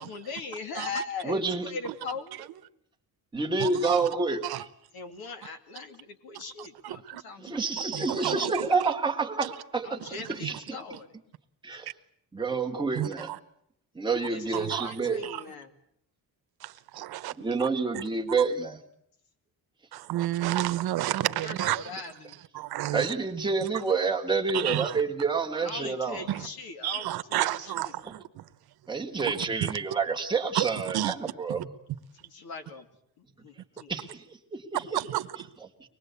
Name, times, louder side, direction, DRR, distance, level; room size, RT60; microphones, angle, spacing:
voice 1, 0.0-2.4 4.9-8.8 9.8-11.1 14.1-15.7 21.2-22.4 25.6-27.7 32.2-32.9 33.2-33.9, left 4 dB, 75° left, 2.6 m, -40 dB
voice 2, 1.2-1.7 3.3-4.4 7.4-10.0 10.3-10.6 11.6-11.9 12.3-13.3 14.0-15.2 17.4-18.8 22.9-26.2 28.9-31.7 33.9-34.2 34.5-34.6, right 4 dB, 10° right, 1.8 m, -28 dB
voice 3, 3.6-4.1 4.4-4.6 6.6-7.2 7.9-8.9 9.4-9.5 10.4-10.5 12.9-13.4 14.5-15.4 16.6-17.3 17.6-17.7 17.9-18.0 18.4-18.5 19.9-22.0 22.5-23.1 23.6-23.8 24.5-25.0 26.3-26.5 26.8-28.5 29.2-29.7 30.5-31.1 31.5-31.6 34.7-35.4, right 14 dB, 80° right, 1.1 m, -31 dB
24.5 x 20.5 x 8.3 m
cardioid pair, 175°, 38 cm